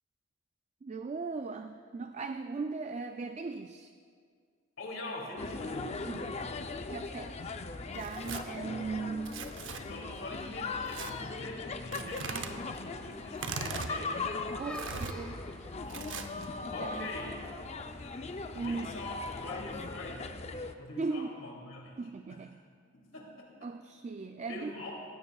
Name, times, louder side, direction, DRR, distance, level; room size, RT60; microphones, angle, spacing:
voice 1, 0.8-3.9 6.1-6.6 6.9-7.3 7.9-9.5 12.0-12.6 14.6-15.4 16.8-17.1 18.6-18.9 21.0-21.3 22.0-22.6 23.6-24.7, right 4 dB, 35° right, 7 dB, 0.3 m, -38 dB
voice 2, 4.8-6.1 9.8-14.3 16.7-17.5 18.6-20.4 20.8-22.5 22.9-23.7 24.5-25.0, left 2 dB, 85° left, -1 dB, 2.7 m, -43 dB
sound 1, 5.4-20.7, left 3 dB, 35° left, 0.5 m, -39 dB
Tearing, 7.9-8.4 9.2-9.8 10.9-11.1 11.9-12.5 13.3-13.9 14.7-15.1 15.9-16.5, right 5 dB, 65° right, 0.7 m, -39 dB
sound 2, 12.1-18.9, left 1 dB, 5° left, 1.2 m, -52 dB
18.5 x 15.5 x 2.3 m, 2.1 s
head